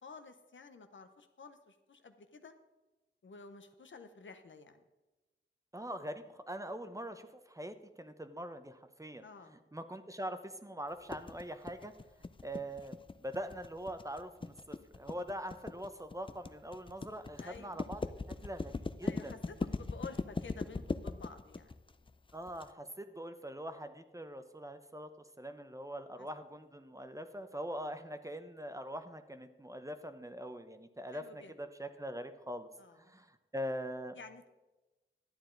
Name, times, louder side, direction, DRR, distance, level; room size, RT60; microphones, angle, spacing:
voice 1, 0.0-2.5 3.2-4.8 9.2-9.6 17.4-17.8 19.0-21.7 26.2-26.3 31.1-31.5 32.8-33.0 34.2-34.5, left 4 dB, 70° left, 7 dB, 0.8 m, -51 dB
voice 2, 5.7-11.9 12.4-18.0 18.4-19.4 22.3-25.1 25.4-32.7 33.0-34.2, equal, 15° right, 9 dB, 0.7 m, -43 dB
sound 1, 11.1-22.7, left 3 dB, 25° left, 0.5 m, -39 dB
11.5 x 9.5 x 3.9 m, 1.1 s
wide cardioid pair, 65°, 20 cm